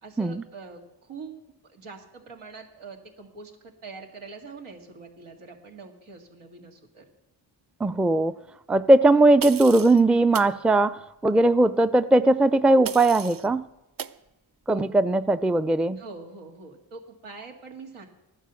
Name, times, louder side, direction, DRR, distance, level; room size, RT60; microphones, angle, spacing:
voice 1, 0.0-7.1 14.7-14.8 16.0-18.1, right 4 dB, 85° right, 2 dB, 2.3 m, -44 dB
voice 2, 7.8-8.3 8.7-13.7 14.7-16.0, right 2 dB, ahead, 14 dB, 0.4 m, -19 dB
sound 1, 9.4-10.0 10.3-10.5 12.8-13.5 14.0-14.2, right 7 dB, 45° right, 0.7 m, -35 dB
13.5 x 9.9 x 7.0 m, 0.95 s
cardioid pair, 50°, 48 cm